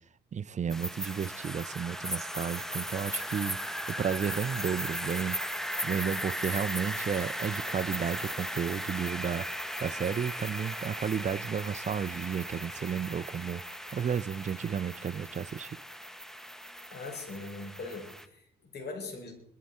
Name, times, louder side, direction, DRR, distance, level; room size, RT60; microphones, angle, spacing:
voice 1, 0.3-5.4 5.8-9.5 9.8-13.6 13.9-15.8, right 7 dB, 35° right, 0.5 m, -33 dB
sound 1, 0.7-18.2, equal, ahead, 1.2 m, -37 dB
voice 2, 16.7-19.3, left 3 dB, 55° left, 6.0 m, -41 dB
21.0 x 13.0 x 4.2 m
cardioid pair, 90°, 20 cm